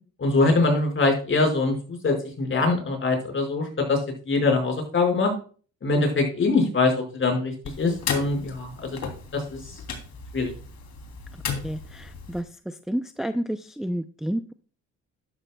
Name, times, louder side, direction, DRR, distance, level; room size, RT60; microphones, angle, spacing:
voice 1, 0.2-4.0 4.3-5.3 5.8-9.0 9.3-9.6 10.3-10.5, left 3 dB, 40° left, 2 dB, 5.4 m, -23 dB
sound 1, 7.6-12.4, left 6 dB, 65° left, 3.2 m, -35 dB
voice 2, 11.6-12.4 12.9-14.5, equal, ahead, 9 dB, 0.5 m, -30 dB
12.5 x 11.0 x 2.3 m, 0.39 s
cardioid pair, 95°, 31 cm